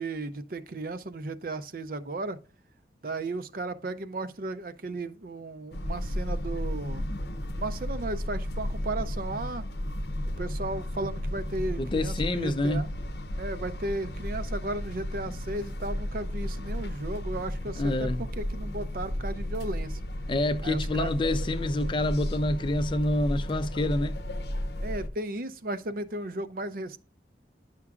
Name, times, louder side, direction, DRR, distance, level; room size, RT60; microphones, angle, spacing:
voice 1, 0.0-2.4 3.0-7.0 7.5-9.6 10.3-12.9 13.4-20.0 20.6-21.1 24.8-27.0, right 2 dB, 55° right, 0.6 m, -35 dB
sound 1, 5.7-25.1, left 1 dB, 65° left, 0.7 m, -33 dB
voice 2, 11.8-12.9 17.8-18.2 20.3-24.2, left 1 dB, 30° left, 0.5 m, -27 dB
10.5 x 5.9 x 2.4 m
head